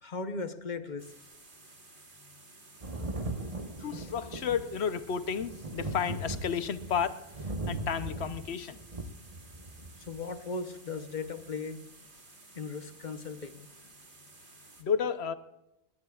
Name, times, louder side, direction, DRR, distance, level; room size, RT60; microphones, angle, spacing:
voice 1, 0.0-1.1 10.0-11.8 12.5-13.7, left 4 dB, 45° left, 9 dB, 1.1 m, -37 dB
sound 1, 1.0-14.8, right 2 dB, 50° right, 2.4 m, -55 dB
Thunder, 2.8-10.2 11.3-11.4, right 2 dB, 35° right, 1.2 m, -39 dB
voice 2, 3.8-7.2 7.7-8.8 14.8-15.3, left 7 dB, 80° left, 12 dB, 1.1 m, -32 dB
21.0 x 18.5 x 2.4 m, 0.92 s
omnidirectional pair, 1.1 m